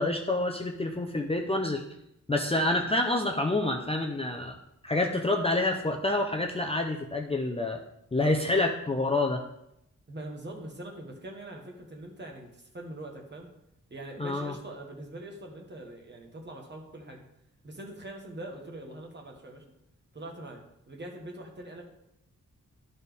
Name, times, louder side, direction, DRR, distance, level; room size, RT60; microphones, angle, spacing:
voice 1, 0.0-1.8 2.3-4.6 4.8-7.8 8.1-9.4 14.2-14.5, left 2 dB, 20° left, 1 dB, 0.5 m, -27 dB
voice 2, 10.1-13.5 13.9-17.2 17.6-19.6 20.1-20.6 20.9-21.8, right 1 dB, 35° right, 1 dB, 1.3 m, -43 dB
12.0 x 4.1 x 3.5 m, 0.80 s
wide cardioid pair, 170°, 32 cm